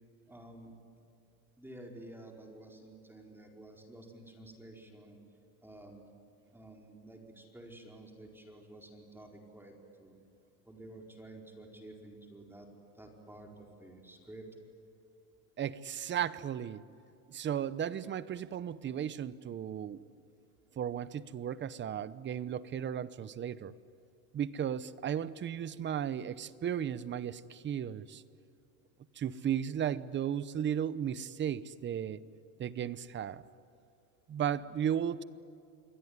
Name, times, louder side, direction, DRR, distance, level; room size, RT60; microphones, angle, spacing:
voice 1, 0.3-0.7 1.6-5.2 5.6-6.0 6.5-9.7 10.0-10.2 10.7-12.7 12.9-14.5, right 1 dB, 5° right, 1 dB, 4.6 m, -51 dB
voice 2, 15.6-16.8 17.3-20.0 20.8-23.7 24.3-28.2 29.2-32.2 32.6-33.4 34.3-35.2, right 9 dB, 25° right, 17 dB, 0.8 m, -35 dB
28.0 x 21.5 x 9.8 m, 2.5 s
supercardioid pair, 130°, 44 cm